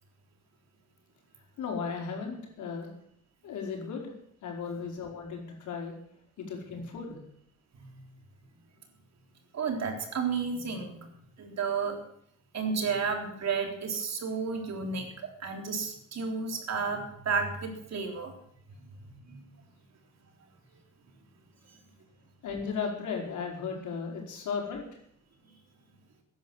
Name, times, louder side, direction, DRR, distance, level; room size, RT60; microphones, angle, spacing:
voice 1, 1.6-2.9 3.4-4.1 4.4-5.9 6.4-7.2 22.4-24.8, left 5 dB, 75° left, 0 dB, 5.0 m, -35 dB
voice 2, 9.5-11.1 11.4-12.0 12.5-15.1 15.4-18.3 19.2-19.4, right 5 dB, 60° right, 3 dB, 3.7 m, -32 dB
14.5 x 10.5 x 7.2 m, 0.71 s
cardioid pair, 90°, 30 cm